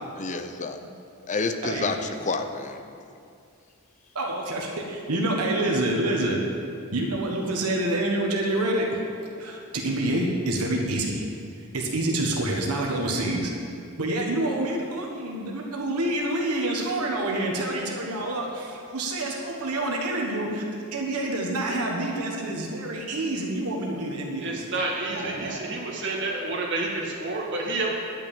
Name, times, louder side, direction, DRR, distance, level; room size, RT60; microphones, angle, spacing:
voice 1, 0.2-0.8 1.3-3.0, left 3 dB, 35° left, 7 dB, 0.6 m, -29 dB
voice 2, 1.6-1.9 4.1-6.4 6.9-8.9 9.4-11.3 11.7-13.5 14.0-20.6 20.9-24.6 25.1-25.6, right 1 dB, 85° right, 0 dB, 1.4 m, -27 dB
voice 3, 24.4-28.0, right 2 dB, 55° right, -1 dB, 1.9 m, -29 dB
10.5 x 6.1 x 8.4 m, 2.4 s
head